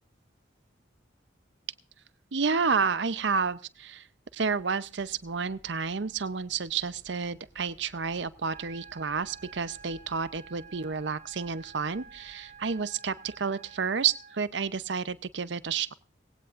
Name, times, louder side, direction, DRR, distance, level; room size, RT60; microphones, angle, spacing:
voice 1, 2.3-4.1 4.3-15.9, right 5 dB, 70° right, 0.7 m, -30 dB
sound 1, 4.9-12.9, equal, 10° right, 4.8 m, -60 dB
sound 2, 8.5-14.5, right 6 dB, 45° right, 3.9 m, -51 dB
19.5 x 16.5 x 2.5 m
head